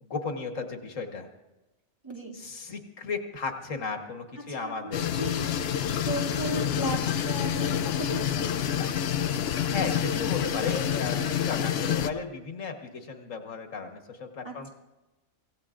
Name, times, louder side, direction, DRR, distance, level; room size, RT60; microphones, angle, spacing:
voice 1, 0.0-1.3 2.3-5.1 9.7-14.7, left 4 dB, 85° left, 4 dB, 1.7 m, -35 dB
voice 2, 2.0-2.3 4.5-5.5 5.9-7.0 7.2-8.6 14.4-14.7, right 2 dB, 20° right, -3 dB, 2.8 m, -36 dB
sound 1, 4.9-12.1, left 9 dB, 60° left, 0.8 m, -28 dB
25.0 x 17.0 x 2.5 m, 1.0 s
omnidirectional pair, 1.3 m